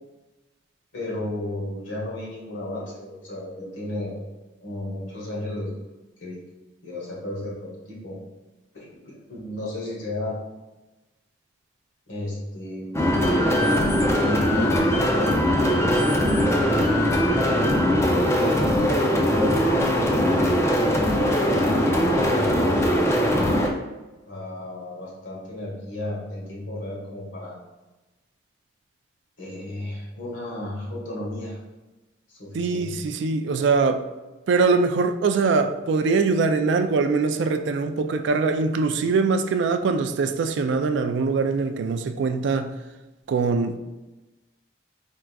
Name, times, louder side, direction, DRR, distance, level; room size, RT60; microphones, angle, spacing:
voice 1, 0.9-4.2 4.6-5.8 6.2-6.4 6.8-8.2 8.7-10.4 12.1-13.1 13.4-15.7 16.5-17.5 18.9-20.6 21.4-22.8 24.3-27.5 29.4-31.6 32.3-33.0, left 1 dB, 80° left, 1.5 m, -33 dB
sound 1, 12.9-23.7, equal, 15° left, 0.4 m, -21 dB
voice 2, 32.5-34.0 34.5-42.8 43.3-43.8, right 4 dB, 70° right, 0.3 m, -22 dB
4.5 x 3.7 x 2.3 m
head